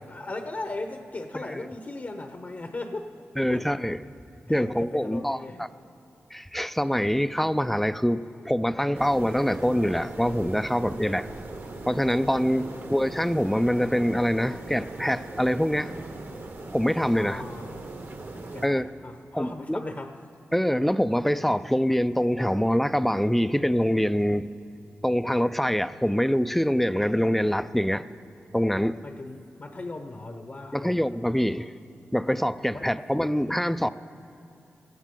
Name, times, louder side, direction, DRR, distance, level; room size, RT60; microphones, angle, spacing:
voice 1, 0.1-3.1 3.5-3.7 4.5-5.6 12.5-12.9 17.1-17.8 18.3-20.1 29.0-31.0 32.7-32.8, left 2 dB, 45° left, 0.9 m, -37 dB
voice 2, 1.3-1.7 3.4-4.0 4.5-5.7 6.3-11.3 11.9-15.9 16.7-17.4 18.6-18.9 19.3-19.8 20.5-24.5 25.0-28.1 28.5-29.0 30.7-31.7 32.1-33.9, equal, 5° left, 0.5 m, -25 dB
sound 1, 8.9-18.7, right 2 dB, 60° right, 1.6 m, -39 dB
17.0 x 15.5 x 3.8 m
cardioid pair, 45°, 5 cm